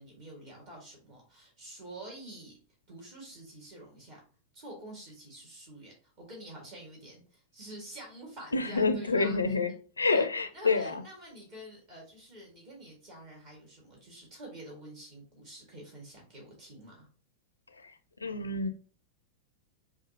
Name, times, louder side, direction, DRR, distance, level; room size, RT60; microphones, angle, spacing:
voice 1, 0.0-2.5 2.9-4.2 4.5-9.4 10.0-10.2 10.5-17.1, right 1 dB, 45° right, -2 dB, 1.7 m, -48 dB
voice 2, 8.5-11.0 17.8-17.9 18.2-18.7, left 4 dB, 80° left, 8 dB, 0.4 m, -28 dB
5.5 x 2.4 x 2.7 m, 0.40 s
figure-of-eight pair, 90°, 0 cm